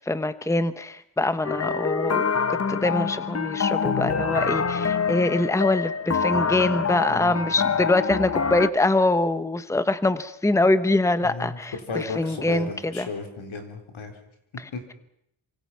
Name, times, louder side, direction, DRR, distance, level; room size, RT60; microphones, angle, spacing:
voice 1, 0.1-2.2 2.5-13.1, left 2 dB, 5° left, 13 dB, 1.0 m, -24 dB
sound 1, 1.4-8.7, left 6 dB, 30° left, 0.9 m, -26 dB
voice 2, 7.1-7.9 11.2-11.6 11.9-14.2 14.7-14.9, left 4 dB, 80° left, 5 dB, 4.2 m, -34 dB
27.0 x 25.0 x 5.8 m, 0.77 s
wide cardioid pair, 90°, 47 cm